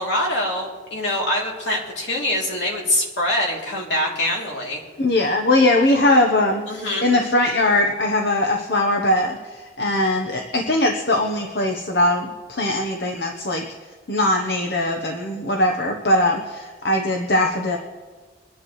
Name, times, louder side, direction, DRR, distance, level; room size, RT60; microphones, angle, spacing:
voice 1, 0.0-4.8 6.7-7.1, left 1 dB, 75° left, -3 dB, 3.0 m, -24 dB
voice 2, 5.0-13.6 14.1-17.8, left 1 dB, 60° left, 1 dB, 1.0 m, -20 dB
23.5 x 10.5 x 3.2 m, 1.4 s
head